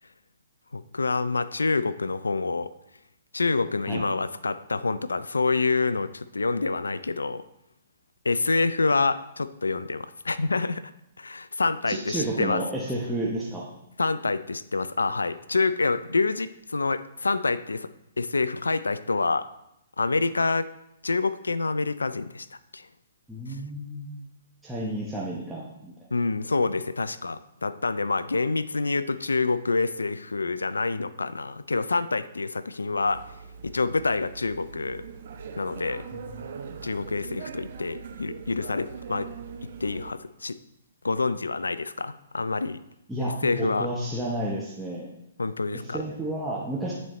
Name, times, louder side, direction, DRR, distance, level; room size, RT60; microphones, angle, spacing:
voice 1, 0.7-2.7 3.3-7.4 8.2-10.9 11.2-12.6 14.0-17.9 18.2-19.5 20.0-20.7 21.0-22.5 22.7-22.9 26.1-33.2 33.6-35.0 35.6-36.0 36.8-39.3 39.8-40.6 41.0-42.8 43.2-43.9 45.4-46.0, left 3 dB, 85° left, 15 dB, 0.3 m, -27 dB
voice 2, 11.9-13.7 23.3-24.2 24.6-25.9 36.1-36.5 43.1-45.1 45.7-46.9, right 1 dB, 5° right, -6 dB, 0.9 m, -31 dB
sound 1, 33.0-40.1, right 6 dB, 60° right, 0.6 m, -41 dB
8.9 x 4.2 x 3.1 m, 0.83 s
hypercardioid pair, 130°, 0 cm